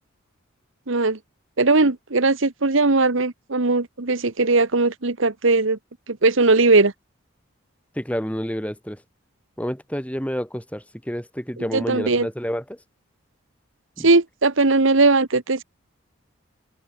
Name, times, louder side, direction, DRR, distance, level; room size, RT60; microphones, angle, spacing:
voice 1, 0.9-1.2 1.6-5.8 6.1-6.9 11.7-12.3 14.0-15.6, right 3 dB, 65° right, 1.3 m, -19 dB
voice 2, 8.0-9.0 9.6-12.8 14.0-14.1, equal, 5° left, 6.5 m, -29 dB
open air
head